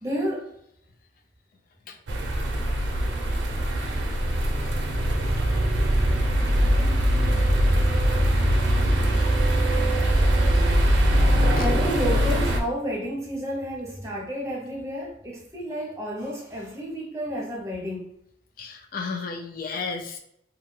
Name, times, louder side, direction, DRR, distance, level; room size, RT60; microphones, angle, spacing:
voice 1, 0.0-0.5 5.2-5.5 11.6-18.0, equal, 15° right, 0.7 m, -31 dB
sound 1, 2.1-12.6, right 1 dB, 90° right, 0.5 m, -22 dB
voice 2, 18.6-20.2, left 4 dB, 50° left, 0.3 m, -32 dB
2.6 x 2.2 x 3.1 m
head